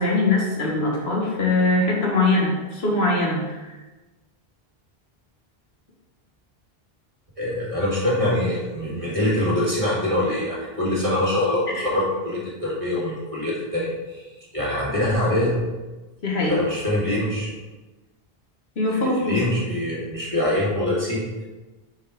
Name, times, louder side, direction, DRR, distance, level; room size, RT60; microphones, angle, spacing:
voice 1, 0.0-3.8 11.8-11.9 16.2-16.6 18.8-19.4, left 2 dB, 85° left, -2 dB, 1.5 m, -22 dB
voice 2, 7.4-15.6 16.5-17.5 18.9-21.2, left 1 dB, 35° right, -6 dB, 1.9 m, -24 dB
4.9 x 4.2 x 4.9 m, 1.2 s
omnidirectional pair, 1.0 m